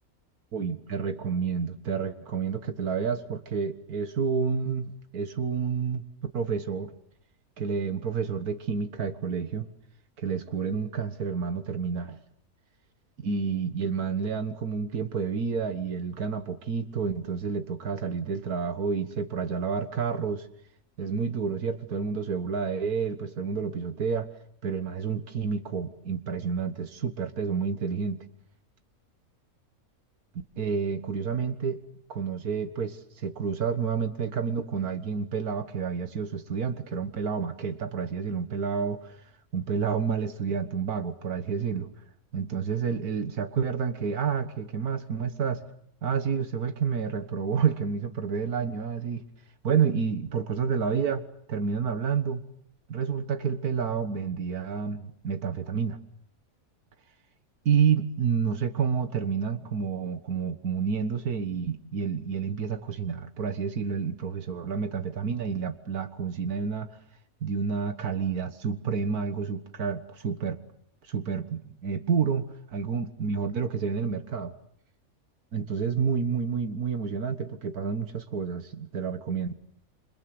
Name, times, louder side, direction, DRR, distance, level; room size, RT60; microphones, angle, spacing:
voice 1, 0.5-6.0 6.3-6.9 7.6-9.7 10.2-12.2 13.2-20.5 21.0-24.3 24.6-28.2 30.6-31.8 32.1-39.2 39.5-41.9 42.3-45.6 46.0-49.2 49.6-52.4 52.9-56.0 57.7-66.9 67.4-70.6 71.0-74.5 75.5-79.5, right 6 dB, 90° right, 9 dB, 2.0 m, -29 dB
28.5 x 26.0 x 7.9 m, 0.69 s
omnidirectional pair, 1.5 m